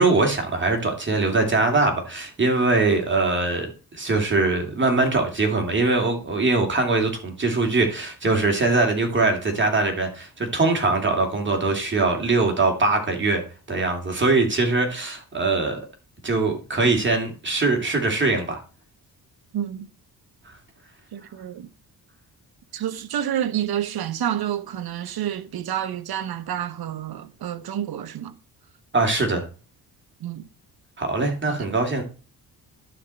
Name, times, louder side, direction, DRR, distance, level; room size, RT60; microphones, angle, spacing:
voice 1, 0.0-13.4 13.7-15.8 16.2-18.6 28.9-29.4 31.0-32.0, right 3 dB, 30° right, 2.6 m, -22 dB
voice 2, 19.5-19.9 21.1-21.7 22.7-28.3 30.2-30.5 31.5-31.7, right 10 dB, 65° right, 1.0 m, -29 dB
11.5 x 4.4 x 6.3 m
cardioid pair, 115°, 40 cm